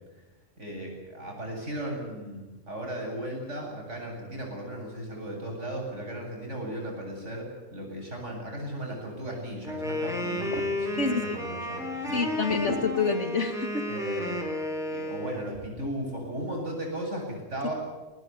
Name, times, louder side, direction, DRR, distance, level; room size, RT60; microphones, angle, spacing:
voice 1, 0.6-12.2 13.9-14.5 14.9-17.7, right 1 dB, 65° right, 0 dB, 8.5 m, -36 dB
Wind instrument woodwind instrument, 9.6-15.5, left 1 dB, ahead, 4.7 m, -32 dB
voice 2, 11.0-11.4 12.1-13.9, left 4 dB, 65° left, 7 dB, 2.6 m, -27 dB
22.5 x 19.5 x 9.5 m, 1.2 s
omnidirectional pair, 1.3 m